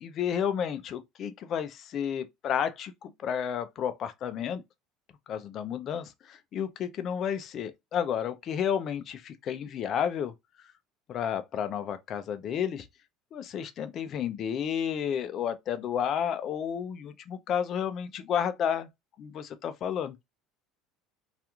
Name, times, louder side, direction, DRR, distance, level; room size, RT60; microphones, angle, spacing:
voice 1, 0.0-4.6 5.3-10.3 11.1-12.9 13.3-18.9 19.2-20.2, left 8 dB, 35° left, 0.3 m, -31 dB
2.4 x 2.3 x 2.9 m
cardioid pair, 170°, 0 cm